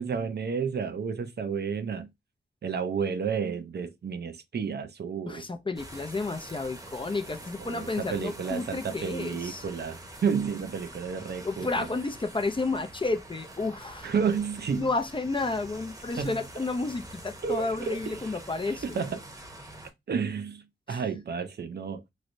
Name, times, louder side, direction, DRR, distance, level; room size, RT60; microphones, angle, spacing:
voice 1, 0.0-2.1 2.6-5.4 7.6-11.9 14.0-14.9 16.2-16.4 17.4-18.4 18.6-19.2 20.1-22.0, right 6 dB, 55° right, 0.5 m, -31 dB
voice 2, 5.3-9.7 11.4-14.1 14.8-19.0 20.9-21.0, left 3 dB, 25° left, 0.5 m, -31 dB
sound 1, 5.8-19.9, right 1 dB, 15° right, 0.9 m, -46 dB
3.1 x 3.0 x 2.6 m
wide cardioid pair, 95°, 21 cm